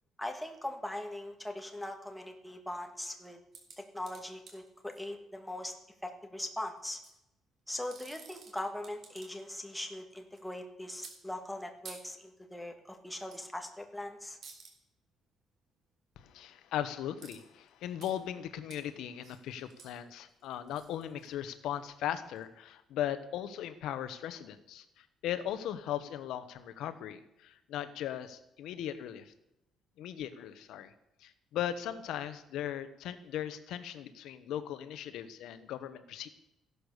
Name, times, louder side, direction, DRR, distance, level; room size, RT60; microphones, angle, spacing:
voice 1, 0.2-3.4 3.8-5.7 6.0-7.0 7.7-14.4, left 1 dB, 5° left, 4 dB, 1.7 m, -40 dB
sound 1, 3.5-5.0 6.8-7.1 7.7-9.5 9.8-10.4 11.0-11.2 11.8-12.0 13.3-13.5 13.8-14.0 14.4-14.7 17.2-17.4 17.7-18.1 18.7-18.8 19.2-21.7 22.4-22.5, right 5 dB, 45° right, 3.3 m, -52 dB
voice 2, 16.2-29.3 30.0-30.9 31.2-36.3, left 10 dB, 75° left, 12 dB, 1.2 m, -38 dB
15.5 x 11.5 x 6.7 m, 0.88 s
cardioid pair, 170°, 0 cm